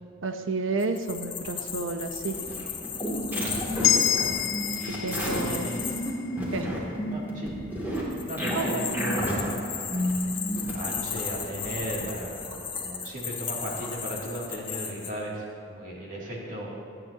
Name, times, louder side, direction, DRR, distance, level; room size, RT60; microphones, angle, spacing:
voice 1, 0.2-2.4 5.0-5.7 6.5-6.7 8.5-8.9, right 3 dB, 80° right, 7 dB, 0.8 m, -31 dB
sound 1, 0.8-6.1 7.9-15.1, left 6 dB, 25° left, 1.3 m, -36 dB
sound 2, 2.3-10.9, equal, 10° right, 2.6 m, -31 dB
voice 2, 3.4-4.0 4.8-5.9 7.1-7.6 8.2-9.8 10.7-16.7, right 1 dB, 40° right, -5 dB, 2.7 m, -36 dB
sound 3, 3.8-8.1, left 10 dB, 90° left, 0.7 m, -29 dB
26.5 x 9.6 x 2.9 m, 2.7 s
head